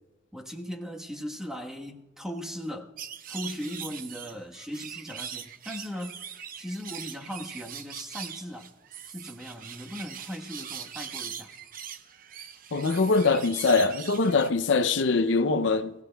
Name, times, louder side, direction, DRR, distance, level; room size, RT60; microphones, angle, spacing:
voice 1, 0.3-2.9 3.3-6.3 6.6-8.7 9.1-11.5, equal, 5° right, 1.2 m, -38 dB
sound 1, 3.0-14.5, right 8 dB, 50° right, 0.7 m, -41 dB
voice 2, 12.7-15.9, left 4 dB, 75° left, 0.5 m, -23 dB
26.5 x 17.0 x 2.2 m
head